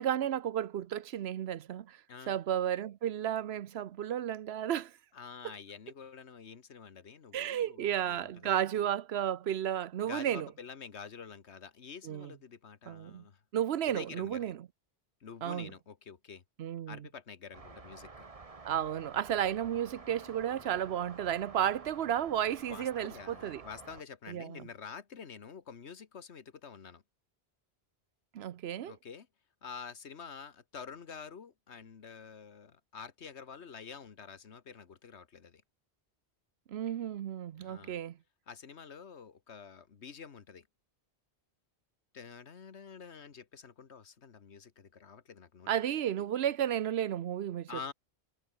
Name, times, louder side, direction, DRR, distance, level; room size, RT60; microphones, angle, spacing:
voice 1, 0.0-2.0 2.3-4.9 7.3-10.5 12.0-12.3 12.9-13.2 13.5-14.6 15.4-15.7 16.6-17.0 18.6-23.6 24.3-24.6 28.3-28.9 36.7-38.2 45.7-47.7, right 10 dB, 75° right, 0.9 m, -33 dB
voice 2, 5.1-8.5 10.0-13.4 13.9-14.5 15.2-16.4 16.9-18.3 22.7-27.0 28.9-29.3 29.6-35.6 37.6-38.0 38.5-40.7 42.1-45.7 47.7-47.9, left 6 dB, 85° left, 1.7 m, -48 dB
sound 1, 17.5-24.0, right 3 dB, 35° right, 1.4 m, -50 dB
omnidirectional pair, 1.1 m